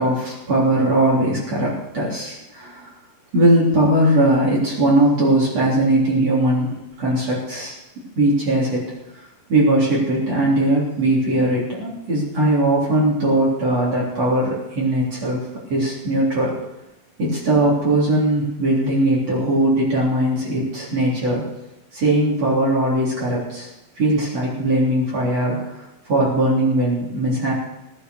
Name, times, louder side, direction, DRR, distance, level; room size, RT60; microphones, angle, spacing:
voice 1, 0.0-2.9 3.3-7.8 8.2-8.8 9.5-15.4 15.7-16.5 17.2-21.4 21.9-23.7 24.0-27.5, right 1 dB, 45° right, -6 dB, 4.6 m, -19 dB
18.5 x 10.5 x 6.7 m, 0.94 s
omnidirectional pair, 4.0 m